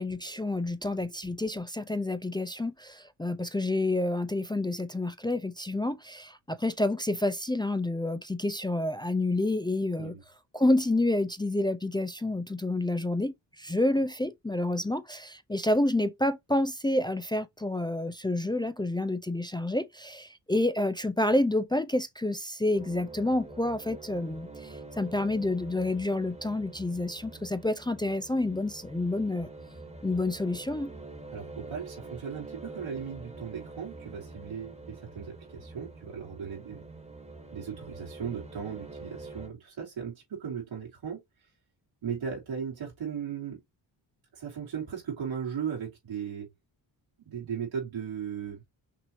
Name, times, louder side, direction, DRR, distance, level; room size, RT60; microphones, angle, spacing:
voice 1, 0.0-10.2 10.5-29.5 30.0-30.9, left 2 dB, 10° left, 0.3 m, -29 dB
sound 1, 22.7-39.5, right 3 dB, 15° right, 1.4 m, -46 dB
voice 2, 31.3-36.8 37.5-41.2 42.0-43.6 44.3-46.5 47.2-48.6, right 7 dB, 85° right, 2.8 m, -37 dB
5.9 x 2.7 x 3.0 m
cardioid pair, 90°, 45 cm